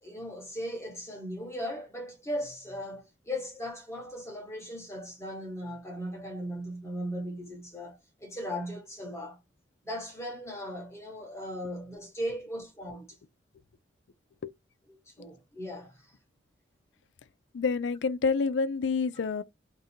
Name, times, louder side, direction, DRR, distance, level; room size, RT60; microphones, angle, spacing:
voice 1, 0.0-9.4 9.8-13.2 15.1-16.1, equal, 15° left, 0.9 m, -38 dB
voice 2, 17.5-19.4, left 4 dB, 80° left, 0.4 m, -28 dB
2.6 x 2.5 x 4.2 m
head